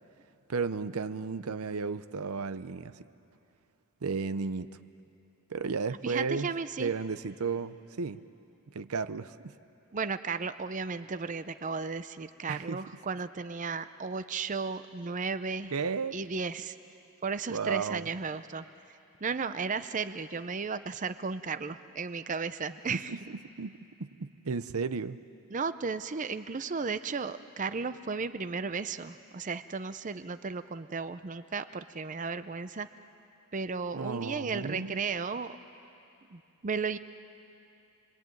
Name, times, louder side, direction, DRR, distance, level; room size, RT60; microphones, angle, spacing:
voice 1, 0.5-3.1 4.0-4.7 5.5-6.5 6.8-8.2 8.7-9.5 12.5-12.8 15.7-16.2 17.5-18.1 22.9-25.2 33.9-35.0, right 5 dB, 85° right, 13 dB, 0.7 m, -34 dB
voice 2, 6.0-6.9 9.9-15.7 16.1-16.8 17.2-18.6 19.2-23.1 25.5-32.9 33.5-35.6 36.3-37.0, right 5 dB, 35° right, 11 dB, 0.6 m, -34 dB
27.5 x 22.0 x 9.1 m, 2.8 s
head